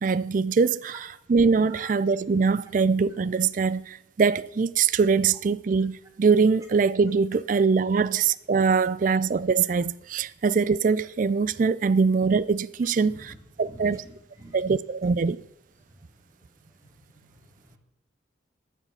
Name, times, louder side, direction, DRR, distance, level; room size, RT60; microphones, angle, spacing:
voice 1, 0.0-14.0 14.5-15.4, right 5 dB, 45° right, 0.3 m, -23 dB
voice 2, 13.6-14.6, right 1 dB, 15° right, 2.5 m, -46 dB
13.0 x 7.4 x 6.7 m
head